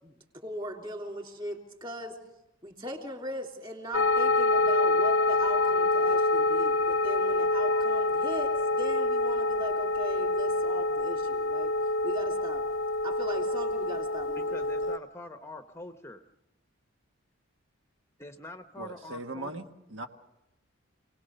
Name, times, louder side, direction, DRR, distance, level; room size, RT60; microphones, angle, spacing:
voice 1, 0.4-2.2 2.6-11.7 12.0-12.6 13.0-14.6, equal, 25° right, 3 dB, 3.4 m, -39 dB
sound 1, 3.9-15.0, left 2 dB, 65° left, 0.8 m, -26 dB
voice 2, 14.4-16.2 18.2-19.5, left 2 dB, 15° left, 7 dB, 0.9 m, -44 dB
voice 3, 18.8-20.1, right 2 dB, 65° right, 5 dB, 1.5 m, -39 dB
28.5 x 19.0 x 6.7 m, 0.93 s
head